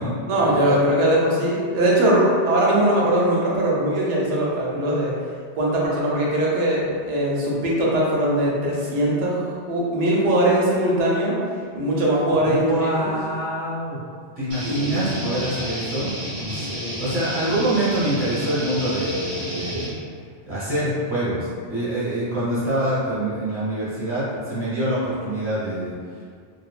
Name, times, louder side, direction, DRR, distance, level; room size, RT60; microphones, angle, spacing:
voice 1, 0.3-5.1 5.5-9.4 9.7-11.3 11.7-13.1 14.6-15.0 16.5-17.0, right 1 dB, 80° right, -4 dB, 1.0 m, -21 dB
voice 2, 12.4-14.0 14.4-16.1 17.0-19.9 20.5-26.2, right 1 dB, 10° right, -13 dB, 1.1 m, -25 dB
sound 1, 14.5-19.9, equal, 50° right, 0.7 m, -31 dB
3.1 x 2.0 x 2.4 m, 2.1 s
omnidirectional pair, 1.2 m